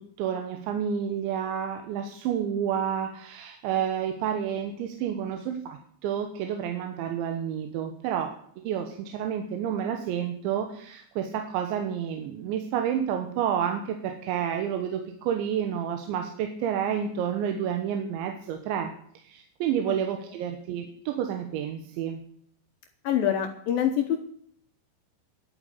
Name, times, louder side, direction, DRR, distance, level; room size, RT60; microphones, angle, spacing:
voice 1, 0.0-8.4 8.7-18.9 19.2-22.2, right 8 dB, 80° right, 5 dB, 3.5 m, -30 dB
voice 2, 23.0-24.2, left 10 dB, 70° left, 6 dB, 2.3 m, -25 dB
11.5 x 8.8 x 8.5 m, 0.63 s
omnidirectional pair, 5.2 m